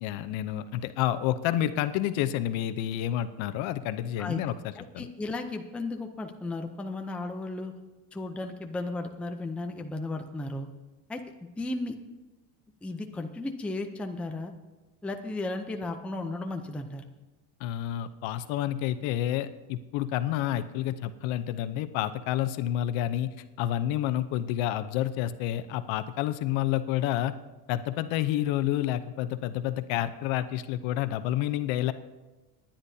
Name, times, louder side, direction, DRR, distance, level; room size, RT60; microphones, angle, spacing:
voice 1, 0.0-5.1 17.6-23.3 23.6-27.3 27.7-31.9, left 12 dB, 70° left, 11 dB, 0.8 m, -29 dB
voice 2, 4.8-7.7 8.1-10.7 11.1-11.2 11.6-12.0 12.8-14.5 15.0-17.0, left 2 dB, 5° left, 4 dB, 0.5 m, -34 dB
26.0 x 10.0 x 2.7 m, 1.2 s
cardioid pair, 145°, 49 cm